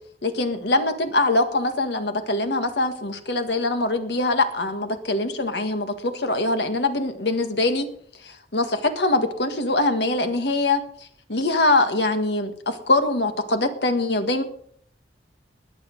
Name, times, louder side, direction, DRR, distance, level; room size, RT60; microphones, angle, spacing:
voice 1, 0.2-7.9 8.2-10.8 11.3-14.4, left 2 dB, 75° left, 8 dB, 1.7 m, -23 dB
20.0 x 7.2 x 5.3 m, 0.62 s
head